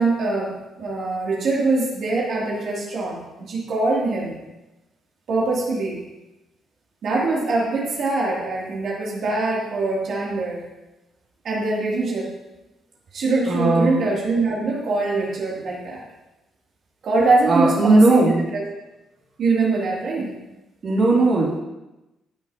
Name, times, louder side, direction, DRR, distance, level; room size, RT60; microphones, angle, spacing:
voice 1, 0.0-4.4 5.3-6.0 7.0-10.6 11.4-12.3 13.1-16.0 17.0-18.6 19.4-20.4, right 3 dB, 60° right, -5 dB, 2.5 m, -23 dB
voice 2, 13.5-14.0 17.4-18.4 20.2-20.3 20.8-21.6, right 2 dB, 40° right, -5 dB, 2.6 m, -17 dB
14.5 x 8.2 x 2.8 m, 1.0 s
cardioid pair, 110°, 0 cm